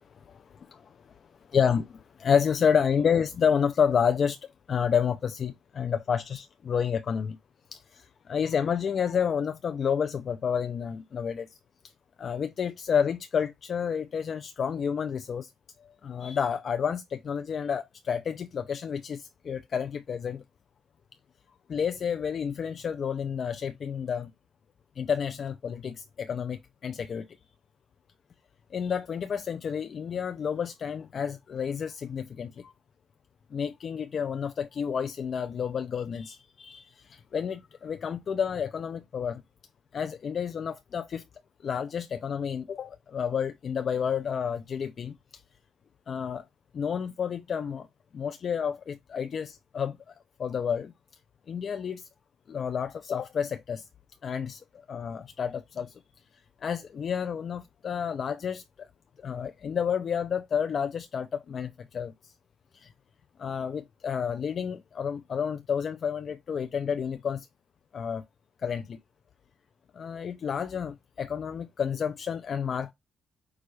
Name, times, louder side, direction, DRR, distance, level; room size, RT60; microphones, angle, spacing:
voice 1, 1.5-4.4 4.7-7.4 7.7-11.5 12.2-15.5 16.0-20.4 21.7-24.3 25.0-27.3 28.7-32.7 33.5-39.4 39.9-41.2 41.6-45.1 46.1-46.4 46.7-47.9 48.1-50.1 50.4-50.9 51.5-52.1 52.5-53.9 54.2-54.6 54.9-55.9 56.6-58.9 59.2-62.3 62.7-62.9 63.4-67.5 67.9-68.2 68.6-69.0 69.9-72.9, left 7 dB, 50° left, 0.5 m, -30 dB
6.2 x 2.4 x 3.2 m
cardioid pair, 90°, 0 cm